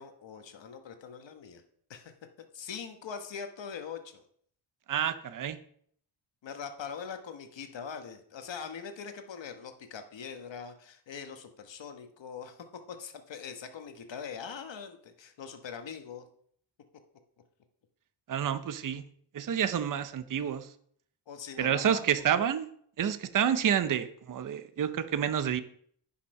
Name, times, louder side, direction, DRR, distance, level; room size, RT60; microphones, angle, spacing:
voice 1, 0.0-1.6 1.9-2.1 2.5-4.2 6.4-16.3 21.3-22.1, left 6 dB, 60° left, 7 dB, 1.2 m, -42 dB
voice 2, 4.9-5.6 18.3-19.0 19.3-20.7 21.6-22.7 23.0-25.6, right 9 dB, 40° right, 11 dB, 0.6 m, -29 dB
10.5 x 5.7 x 5.4 m, 0.63 s
wide cardioid pair, 150°, 49 cm